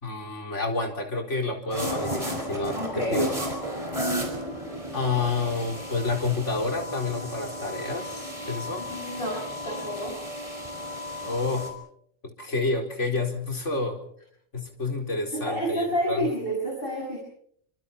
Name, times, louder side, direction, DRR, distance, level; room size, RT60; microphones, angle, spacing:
voice 1, 0.0-3.4 4.9-8.9 11.2-11.7 12.2-14.0 14.5-16.3, left 3 dB, 70° left, 3 dB, 4.7 m, -29 dB
sound 1, 1.7-11.7, equal, 25° right, 5.6 m, -33 dB
voice 2, 2.7-3.2 8.9-10.2 15.3-17.2, equal, 45° left, -1 dB, 6.6 m, -29 dB
29.5 x 25.0 x 4.3 m, 0.65 s
omnidirectional pair, 1.3 m